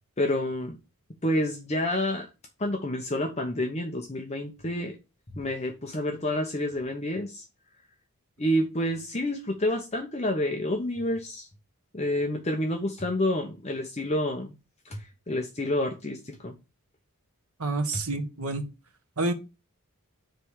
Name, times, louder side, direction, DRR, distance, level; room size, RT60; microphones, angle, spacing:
voice 1, 0.2-0.8 1.2-2.3 2.6-5.0 5.3-7.4 8.4-11.5 11.9-14.5 14.9-16.5, left 1 dB, 30° left, 0.9 m, -29 dB
voice 2, 17.6-18.6 19.2-19.3, right 2 dB, 85° right, 1.6 m, -28 dB
8.0 x 3.4 x 6.4 m
head